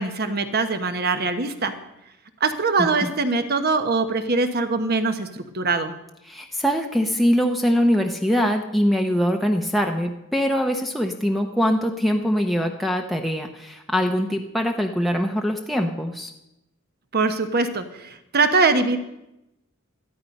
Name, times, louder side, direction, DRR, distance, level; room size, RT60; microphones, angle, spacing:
voice 1, 0.0-1.7 2.4-5.9 17.1-19.0, right 3 dB, 50° right, 8 dB, 1.1 m, -22 dB
voice 2, 6.3-16.3, equal, ahead, 2 dB, 0.7 m, -23 dB
13.5 x 12.0 x 5.3 m, 0.89 s
head